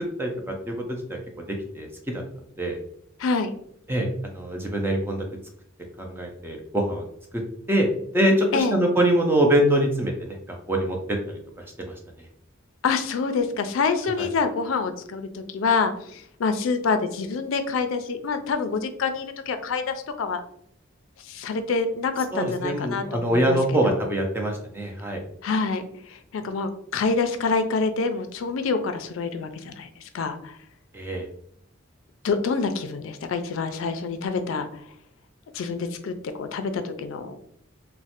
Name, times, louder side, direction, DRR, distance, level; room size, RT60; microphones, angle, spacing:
voice 1, 0.2-2.2 2.6-2.8 3.9-5.2 6.0-7.0 7.7-11.4 11.8-12.3 14.2-14.3 22.3-25.2 30.9-31.2, right 1 dB, 10° right, 1 dB, 0.4 m, -24 dB
voice 2, 3.2-3.5 8.5-8.8 12.8-20.4 21.2-23.6 23.8-24.0 25.4-30.6 32.2-34.7 35.5-37.4, left 4 dB, 70° left, 8 dB, 0.3 m, -27 dB
3.0 x 2.1 x 2.8 m, 0.70 s
head